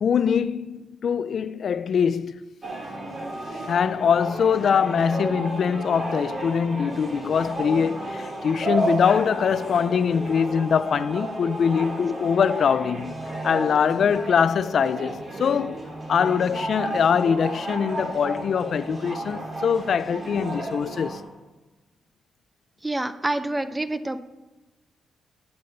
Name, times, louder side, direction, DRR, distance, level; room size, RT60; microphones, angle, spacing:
voice 1, 0.0-2.4 3.7-13.2 13.4-15.8 16.1-21.2, left 7 dB, 60° left, 0.4 m, -23 dB
sound 1, 2.6-21.2, right 1 dB, 35° right, 2.8 m, -33 dB
voice 2, 22.8-24.2, right 2 dB, 10° right, 0.5 m, -27 dB
9.4 x 8.1 x 6.7 m
cardioid pair, 120°, 0 cm